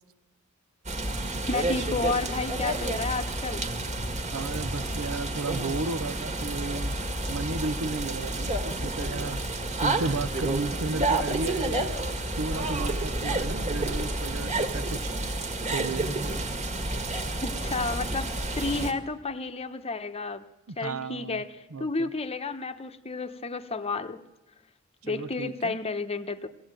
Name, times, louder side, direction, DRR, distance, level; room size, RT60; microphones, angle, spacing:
sound 1, 0.8-18.9, right 2 dB, 35° right, 1.9 m, -30 dB
voice 1, 1.5-3.7 17.4-20.5 20.8-24.3 25.0-26.5, left 3 dB, 30° left, 0.9 m, -31 dB
voice 2, 4.3-7.0 7.3-9.4 9.8-11.9 12.4-15.1 15.7-16.1 20.7-21.4 21.7-22.1 25.0-25.8, right 3 dB, 85° right, 0.7 m, -33 dB
23.0 x 16.5 x 9.0 m
head